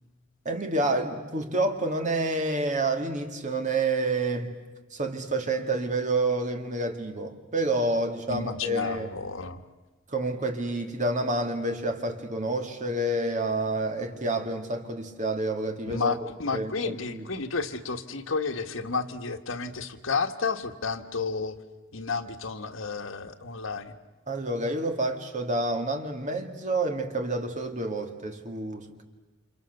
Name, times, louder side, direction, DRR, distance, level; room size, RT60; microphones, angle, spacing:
voice 1, 0.4-4.6 4.9-9.1 10.1-16.2 16.5-17.3 24.3-29.0, right 2 dB, 40° right, 5 dB, 2.3 m, -28 dB
voice 2, 8.3-9.6 15.9-21.6 21.9-23.9, left 4 dB, 85° left, 7 dB, 1.5 m, -31 dB
30.0 x 27.5 x 6.7 m, 1.2 s
head